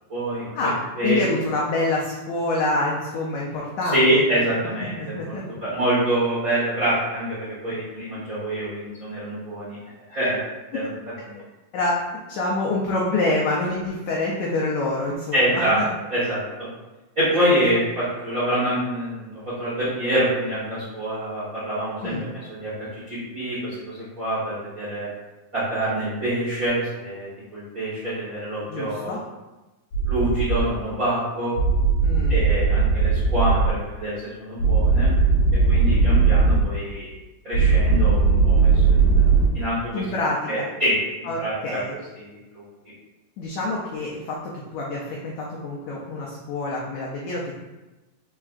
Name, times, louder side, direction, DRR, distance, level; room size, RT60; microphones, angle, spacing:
voice 1, 0.1-1.2 3.8-9.8 10.1-10.4 10.7-10.9 11.2-11.4 15.3-15.8 16.1-16.7 17.1-19.3 19.6-25.1 25.5-29.2 30.0-31.5 32.3-35.1 35.7-37.1 37.4-40.0 40.5-40.9 41.4-41.8 42.1-42.6, right 1 dB, 70° right, -12 dB, 0.8 m, -26 dB
voice 2, 1.0-4.4 5.0-5.4 11.3-11.4 11.7-12.0 12.3-15.9 17.3-17.4 22.0-22.3 28.7-29.2 32.0-32.4 39.9-40.7 41.2-41.4 41.6-41.9 43.4-44.4 44.7-47.5, left 2 dB, 90° left, -3 dB, 1.6 m, -26 dB
sound 1, 29.9-30.6 31.6-33.7 34.6-36.6 37.5-39.5, right 4 dB, 65° left, 1.7 m, -18 dB
4.6 x 4.3 x 2.4 m, 1.1 s
omnidirectional pair, 4.1 m